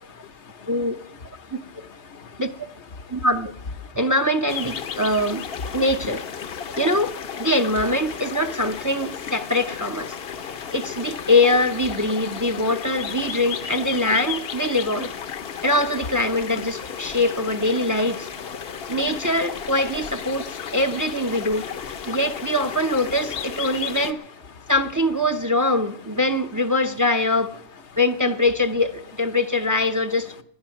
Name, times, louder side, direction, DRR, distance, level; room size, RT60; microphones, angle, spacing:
voice 1, 0.2-0.7 1.4-2.4 2.9-3.2 3.8-4.0 6.5-6.8 10.2-10.7 15.4-15.6 18.6-19.0 22.1-22.2 24.5-24.7, left 5 dB, 75° left, 11 dB, 1.3 m, -45 dB
voice 2, 3.1-3.5 4.0-5.4 5.7-6.2 6.8-7.1 7.4-10.2 10.7-15.1 15.6-18.3 18.9-21.6 22.1-24.2 24.7-27.5 28.0-30.3, left 1 dB, 20° right, 9 dB, 0.6 m, -23 dB
sound 1, 4.5-24.1, left 7 dB, 60° left, 0.9 m, -34 dB
18.5 x 11.0 x 5.8 m, 0.69 s
omnidirectional pair, 1.2 m